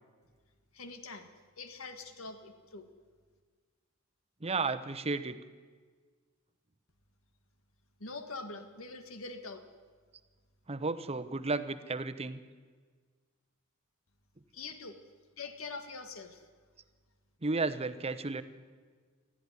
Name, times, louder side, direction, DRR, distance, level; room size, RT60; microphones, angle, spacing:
voice 1, 0.7-1.3 1.6-2.9 8.0-9.6 14.5-15.0 15.4-16.4, left 3 dB, 80° left, 8 dB, 1.7 m, -44 dB
voice 2, 4.4-5.4 10.7-12.4 17.4-18.4, right 3 dB, 30° right, 11 dB, 0.9 m, -33 dB
19.0 x 14.0 x 10.0 m, 1.5 s
head